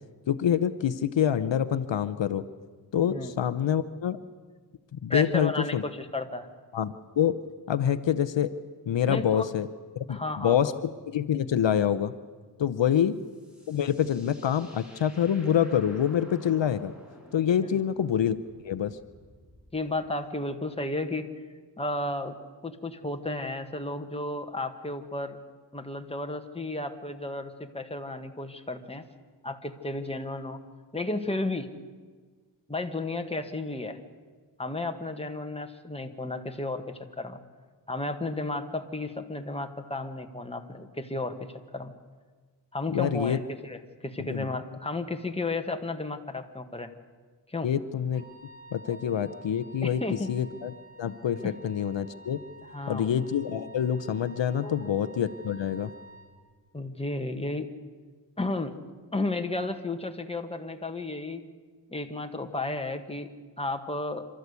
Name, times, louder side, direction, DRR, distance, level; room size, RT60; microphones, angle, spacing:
voice 1, 0.3-2.5 2.9-4.2 4.9-5.8 6.7-7.4 7.7-8.5 8.9-9.7 10.0-12.1 12.6-13.2 13.7-16.9 17.3-18.4 18.6-19.0 42.9-43.4 44.2-44.5 47.6-48.2 48.7-50.0 50.3-50.7 51.0-52.4 52.9-55.9, left 9 dB, 80° left, 12 dB, 0.9 m, -26 dB
voice 2, 5.1-6.5 9.1-9.5 10.1-10.7 17.7-17.8 19.7-21.3 21.8-22.4 22.6-25.4 25.7-29.0 29.4-30.6 30.9-31.7 32.7-34.0 34.6-37.4 37.9-41.9 42.7-43.8 44.0-46.9 47.5-47.7 49.8-50.3 51.4-51.5 52.7-53.1 54.6-54.9 56.7-57.7 58.4-58.7 59.1-61.4 61.9-63.3 63.6-64.3, left 2 dB, 15° left, 5 dB, 1.7 m, -33 dB
sound 1, 12.8-20.0, equal, ahead, 6.3 m, -54 dB
Wind instrument woodwind instrument, 48.1-56.3, right 1 dB, 75° right, 3.8 m, -50 dB
27.5 x 13.5 x 8.3 m, 1.5 s
wide cardioid pair, 80°, 43 cm